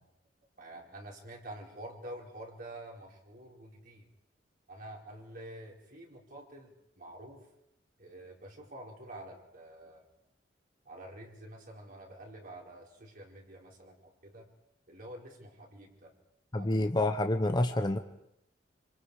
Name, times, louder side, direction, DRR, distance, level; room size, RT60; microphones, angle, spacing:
voice 1, 0.6-4.1 4.7-7.4 8.0-10.1 10.8-14.5 14.9-16.2 16.6-16.9, right 1 dB, 50° right, -1 dB, 4.6 m, -48 dB
voice 2, 16.5-18.0, left 1 dB, 25° left, 6 dB, 0.9 m, -28 dB
26.5 x 25.5 x 4.9 m, 0.82 s
head